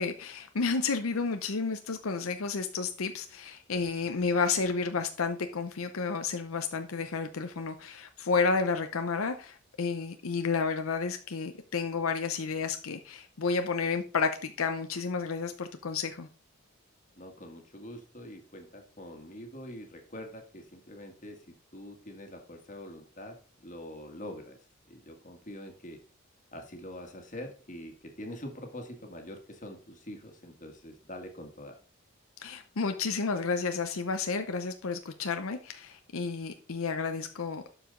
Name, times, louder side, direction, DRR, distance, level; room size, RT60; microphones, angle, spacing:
voice 1, 0.0-16.3 32.4-37.6, left 4 dB, 80° left, 0.7 m, -31 dB
voice 2, 17.1-24.6 24.9-26.0 26.5-31.8, left 1 dB, 35° left, 1.6 m, -44 dB
12.0 x 4.9 x 3.8 m
head